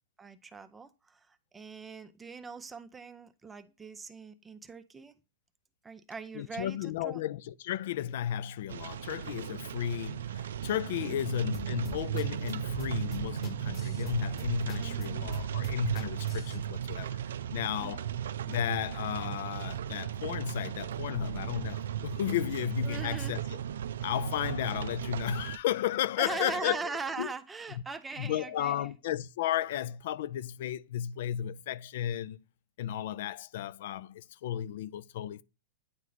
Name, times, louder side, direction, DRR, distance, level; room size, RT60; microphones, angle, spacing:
voice 1, 0.2-5.1 5.8-7.2 11.0-11.2 14.8-15.3 17.8-18.0 22.8-23.4 26.2-28.9, right 4 dB, 10° right, 0.5 m, -41 dB
voice 2, 6.3-17.2 17.5-18.1 18.5-23.4 24.0-26.8 27.2-27.3 28.2-32.4 32.8-35.4, left 11 dB, 60° left, 0.3 m, -34 dB
sound 1, 8.7-25.6, right 10 dB, 80° right, 0.4 m, -36 dB
sound 2, 11.5-16.6, left 7 dB, 25° left, 1.0 m, -44 dB
9.3 x 3.2 x 3.9 m
hypercardioid pair, 150°, 0 cm